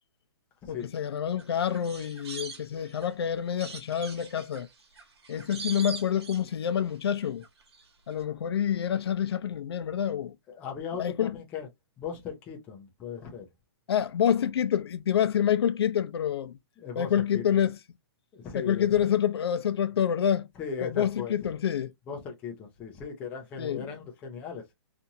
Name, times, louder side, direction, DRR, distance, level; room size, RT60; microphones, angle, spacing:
voice 1, 0.7-4.7 5.3-7.4 8.1-10.3 11.0-11.4 13.9-16.6 17.0-17.7 18.5-20.5 20.8-21.9 23.6-23.8, left 9 dB, 70° left, 0.5 m, -27 dB
sound 1, 1.4-3.1 3.6-6.9 7.2-7.8 8.1-8.2, right 4 dB, 75° right, 1.2 m, -43 dB
voice 2, 10.5-11.7 12.0-13.5 16.8-17.4 18.3-18.9 20.6-21.4 22.1-24.7, left 6 dB, 10° left, 0.4 m, -38 dB
2.7 x 2.5 x 2.7 m
hypercardioid pair, 170°, 14 cm